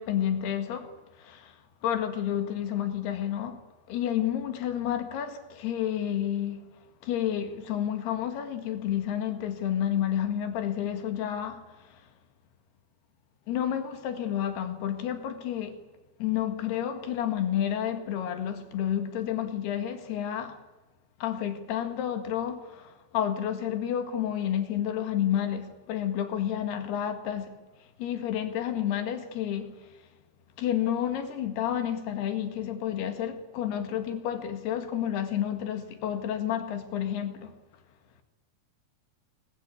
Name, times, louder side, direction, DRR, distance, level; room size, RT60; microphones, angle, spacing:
voice 1, 0.0-3.6 3.9-6.6 7.0-12.1 13.5-15.9 16.2-20.6 21.2-27.6 28.0-29.9 30.6-37.5, left 10 dB, 90° left, 4.0 m, -30 dB
25.5 x 20.5 x 8.6 m
omnidirectional pair, 4.5 m